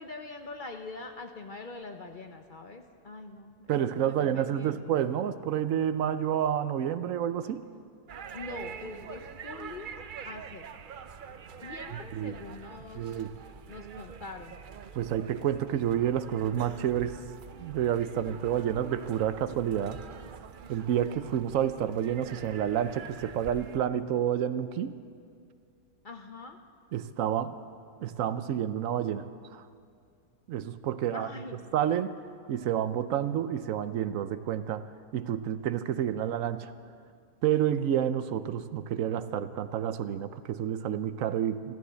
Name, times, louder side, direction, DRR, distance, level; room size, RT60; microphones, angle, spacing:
voice 1, 0.0-4.8 8.3-10.7 11.6-13.2 13.7-14.6 26.0-26.6 31.1-31.7, left 3 dB, 45° left, 5 dB, 0.6 m, -44 dB
voice 2, 3.7-7.7 11.9-12.4 12.9-13.3 14.9-17.2 17.6-20.0 20.7-24.9 26.9-27.6 28.0-29.6 30.5-31.3 31.7-32.1 32.5-34.9 35.1-36.7 37.4-41.7, right 10 dB, 65° right, 12 dB, 0.9 m, -29 dB
sound 1, 8.1-23.8, right 7 dB, 85° right, 0.4 m, -45 dB
14.0 x 13.0 x 8.0 m, 2.3 s
omnidirectional pair, 1.7 m